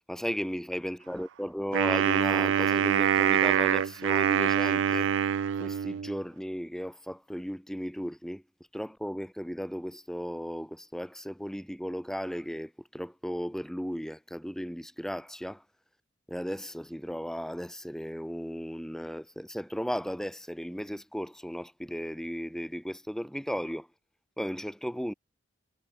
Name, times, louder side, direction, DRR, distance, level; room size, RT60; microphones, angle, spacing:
voice 1, 0.1-5.1 5.6-8.4 8.7-15.6 16.3-23.9 24.4-25.1, equal, ahead, 6.6 m, -35 dB
Wind instrument woodwind instrument, 1.7-6.2, right 8 dB, 70° right, 0.4 m, -25 dB
head